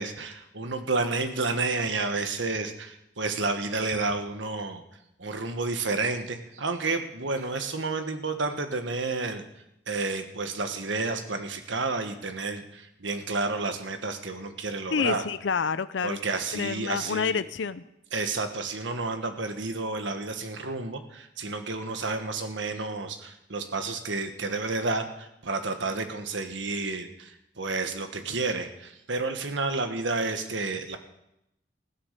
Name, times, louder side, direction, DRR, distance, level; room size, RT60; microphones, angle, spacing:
voice 1, 0.0-4.8 5.2-9.4 9.9-15.2 16.0-17.4 18.1-31.0, right 3 dB, 85° right, 7 dB, 1.5 m, -30 dB
voice 2, 14.9-16.2 16.5-17.8, left 5 dB, 80° left, 14 dB, 0.5 m, -28 dB
15.5 x 9.7 x 6.8 m, 0.83 s
head